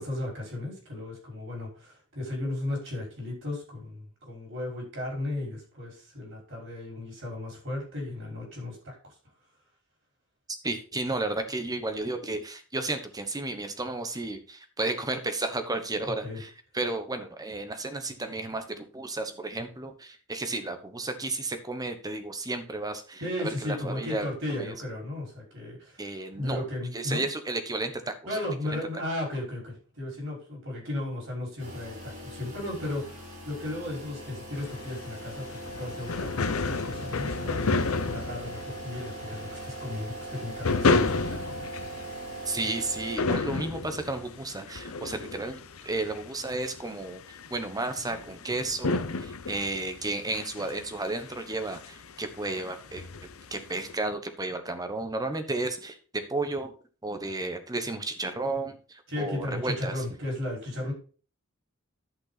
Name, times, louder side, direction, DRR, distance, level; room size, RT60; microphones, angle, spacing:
voice 1, 0.0-9.0 16.2-16.4 23.2-26.1 26.4-27.2 28.3-37.6 38.1-41.9 59.1-60.9, left 1 dB, 60° right, -1 dB, 5.3 m, -35 dB
voice 2, 10.6-24.2 24.6-24.7 26.0-26.6 26.9-28.1 28.6-28.8 42.5-53.1 53.5-56.7 57.0-60.0, right 2 dB, 20° right, 8 dB, 1.1 m, -33 dB
sound 1, 31.6-43.2, right 1 dB, 90° right, 5.6 m, -40 dB
sound 2, 34.6-53.9, left 3 dB, 75° left, 0.7 m, -32 dB
10.5 x 5.8 x 4.1 m, 0.39 s
head